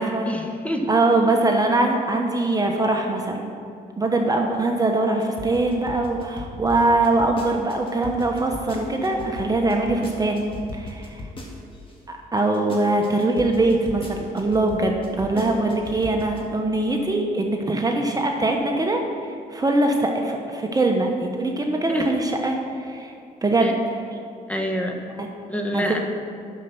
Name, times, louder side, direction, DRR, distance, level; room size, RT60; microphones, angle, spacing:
voice 1, 0.3-0.9 15.3-15.4 21.9-22.1 23.6-23.7 24.5-25.0 25.5-26.0, equal, 10° left, 2 dB, 1.3 m, -26 dB
voice 2, 0.9-3.5 4.0-10.4 10.7-11.2 12.1-23.1 23.4-24.0 25.2-25.5 25.7-26.0, right 2 dB, 25° right, 2 dB, 1.1 m, -22 dB
sound 1, 5.2-11.9 12.4-16.4, left 2 dB, 35° left, 1.9 m, -37 dB
9.0 x 6.7 x 5.9 m, 2.4 s
cardioid pair, 70°, 16 cm